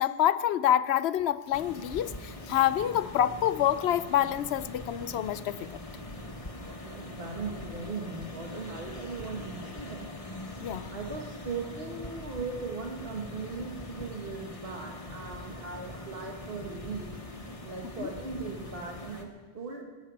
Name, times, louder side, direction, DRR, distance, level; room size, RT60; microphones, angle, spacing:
voice 1, 0.0-5.8 10.6-10.9 18.0-18.1, left 11 dB, 85° left, 16 dB, 0.9 m, -27 dB
sound 1, 1.5-19.2, left 1 dB, 35° left, 1.4 m, -42 dB
voice 2, 6.6-10.1 10.9-17.1 17.6-19.3 19.5-19.8, right 4 dB, 65° right, 1 dB, 2.1 m, -38 dB
14.0 x 8.5 x 9.6 m, 1.3 s
omnidirectional pair, 1.0 m